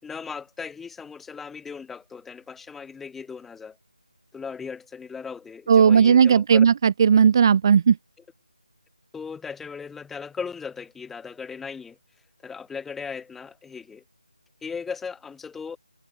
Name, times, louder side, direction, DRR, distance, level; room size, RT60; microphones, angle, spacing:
voice 1, 0.0-3.8 4.3-6.7 9.1-12.0 12.4-14.0 14.6-15.8, left 5 dB, 5° left, 6.0 m, -37 dB
voice 2, 5.7-7.9, right 7 dB, 30° right, 1.2 m, -16 dB
figure-of-eight pair, 160°, 4 cm